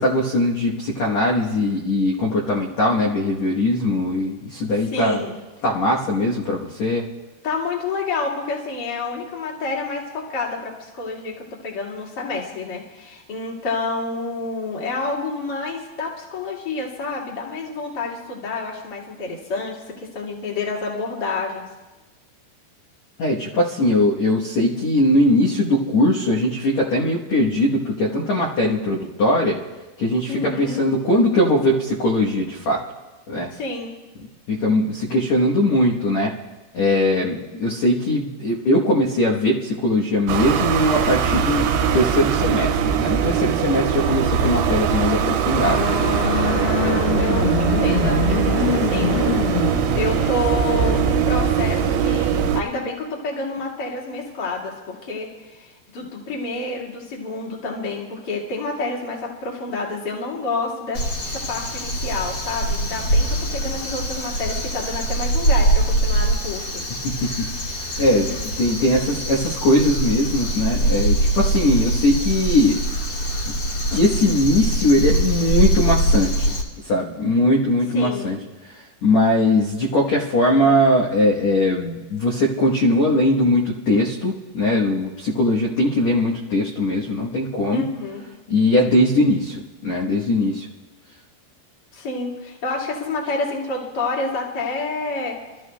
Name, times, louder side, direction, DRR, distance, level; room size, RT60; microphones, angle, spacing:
voice 1, 0.0-5.2 5.6-7.0 23.2-29.6 30.0-32.8 33.3-33.5 34.5-36.3 36.7-45.9 66.9-68.3 68.6-72.8 73.5-73.6 73.9-76.5 76.8-78.4 78.6-78.7 79.0-87.8 88.5-90.6, left 1 dB, 65° left, -3 dB, 1.8 m, -20 dB
voice 2, 4.9-5.3 7.4-11.4 11.6-21.7 30.3-30.9 33.5-33.9 46.8-48.4 48.7-49.3 50.0-61.0 61.3-66.8 68.1-68.4 77.9-78.3 87.7-88.2 91.9-95.4, left 3 dB, 35° left, -4 dB, 1.9 m, -28 dB
sound 1, 40.3-52.6, right 7 dB, 85° right, 2.8 m, -21 dB
sound 2, 45.5-51.4, left 6 dB, 90° left, 6.0 m, -25 dB
Crow, 60.9-76.6, right 1 dB, 50° left, 1.8 m, -23 dB
28.0 x 13.5 x 2.2 m, 1.2 s
omnidirectional pair, 4.6 m